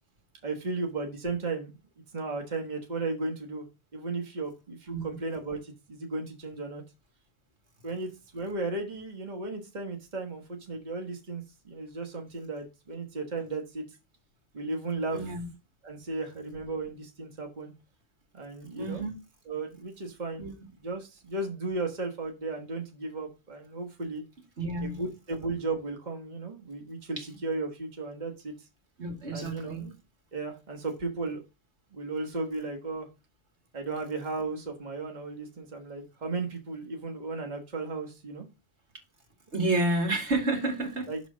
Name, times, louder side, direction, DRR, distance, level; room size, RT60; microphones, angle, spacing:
voice 1, 0.4-1.8 2.1-3.6 3.9-6.8 7.8-13.8 14.5-15.3 15.8-17.7 18.3-19.0 19.4-20.4 20.8-24.2 24.8-28.7 29.3-30.0 30.3-31.4 31.9-33.1 33.7-38.5 41.1-41.2, right 3 dB, 40° right, 1.4 m, -35 dB
voice 2, 15.1-15.5 18.8-19.2 20.4-20.5 24.6-25.0 27.2-27.3 29.0-29.9 39.5-41.1, right 2 dB, 85° right, 2.5 m, -30 dB
6.2 x 4.0 x 6.1 m
omnidirectional pair, 1.1 m